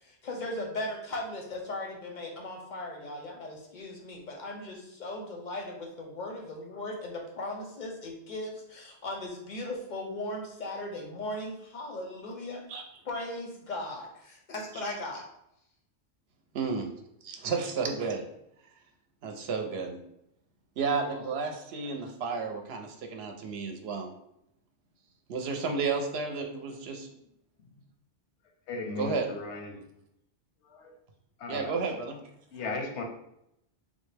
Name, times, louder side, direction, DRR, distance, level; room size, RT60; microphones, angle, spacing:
voice 1, 0.0-5.6 6.0-12.6 13.1-15.2, left 1 dB, 55° left, 1 dB, 0.6 m, -38 dB
voice 2, 16.5-16.9 17.2-18.3 19.2-20.0 20.8-24.1 25.3-27.1 29.0-29.4 31.5-32.2, right 4 dB, 70° right, 3 dB, 0.8 m, -32 dB
voice 3, 28.7-29.8 30.6-30.9 31.4-31.7 32.5-33.0, left 3 dB, 85° left, 3 dB, 0.9 m, -37 dB
3.6 x 2.1 x 3.2 m, 0.79 s
omnidirectional pair, 1.1 m